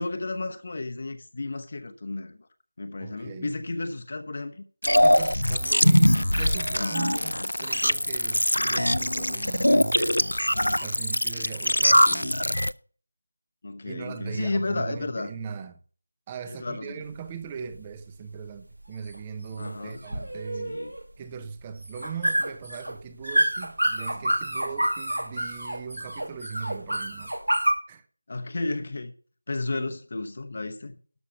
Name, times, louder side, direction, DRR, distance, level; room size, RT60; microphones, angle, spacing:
voice 1, 0.0-2.4 2.8-4.6 6.7-7.5 13.6-15.3 16.5-17.0 19.6-20.0 20.7-20.9 28.3-29.1 29.5-31.0, left 2 dB, 40° left, 0.9 m, -32 dB
voice 2, 3.0-3.6 5.0-10.3 10.8-12.4 13.8-15.8 16.3-20.8 21.2-27.4 27.9-28.1 29.7-30.0, right 6 dB, 15° right, 0.7 m, -39 dB
sound 1, 4.8-12.7, left 1 dB, 80° left, 0.6 m, -22 dB
sound 2, 17.0-27.7, right 1 dB, 75° right, 2.2 m, -29 dB
12.5 x 6.2 x 6.5 m
figure-of-eight pair, 165°, 0 cm